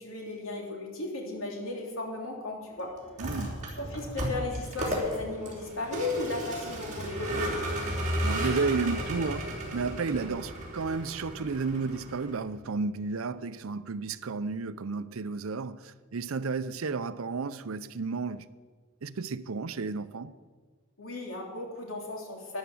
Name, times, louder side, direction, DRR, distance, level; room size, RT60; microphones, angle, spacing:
voice 1, 0.0-2.9 3.8-7.8 21.0-22.6, left 2 dB, 70° left, 3.2 m, -35 dB
Vehicle, 3.0-12.4, right 1 dB, 35° right, 4.1 m, -34 dB
voice 2, 3.2-3.7 8.2-18.5 19.0-20.3, right 4 dB, 75° right, 0.6 m, -32 dB
13.0 x 10.5 x 7.1 m
head